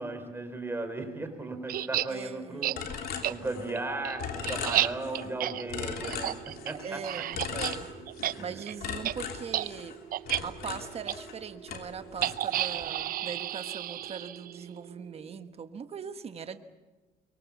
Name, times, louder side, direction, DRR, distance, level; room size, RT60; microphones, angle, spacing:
voice 1, 0.0-2.9 3.2-7.2 8.3-8.4, right 2 dB, 15° right, 6 dB, 4.2 m, -36 dB
sound 1, 1.7-2.1 2.6-2.8 3.2-3.3 3.8-7.8 8.1-8.3 8.6-8.7 9.0-9.1 9.5-9.7 10.1-10.4 11.1-11.2 12.2-14.6, right 12 dB, 60° right, 0.7 m, -31 dB
voice 2, 2.1-2.7 6.7-7.9 8.2-10.0 10.4-16.6, right 6 dB, 35° right, 9 dB, 1.3 m, -41 dB
sound 2, 2.8-3.9 4.2-5.3 5.7-6.9 7.3-8.5 8.8-11.4 11.7-12.9, left 7 dB, 65° left, 3.0 m, -38 dB
sound 3, 3.6-15.4, right 10 dB, 90° right, 2.7 m, -50 dB
23.5 x 23.0 x 7.2 m, 1.2 s
cardioid pair, 110°, 17 cm